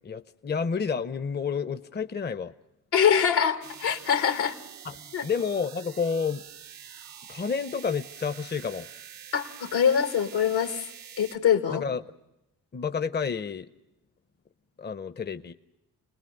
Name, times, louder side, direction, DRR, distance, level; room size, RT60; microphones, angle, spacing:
voice 1, 0.0-2.5 4.8-6.4 7.3-8.9 11.7-12.0 12.7-13.7 14.8-15.5, left 6 dB, 25° left, 12 dB, 0.8 m, -30 dB
voice 2, 2.9-4.6 5.1-5.3 9.3-10.9 11.2-11.8, left 8 dB, 75° left, 7 dB, 1.8 m, -24 dB
sound 1, 3.6-11.4, right 9 dB, 90° right, 1.3 m, -46 dB
29.0 x 20.5 x 6.6 m, 0.90 s
supercardioid pair, 50°, 38 cm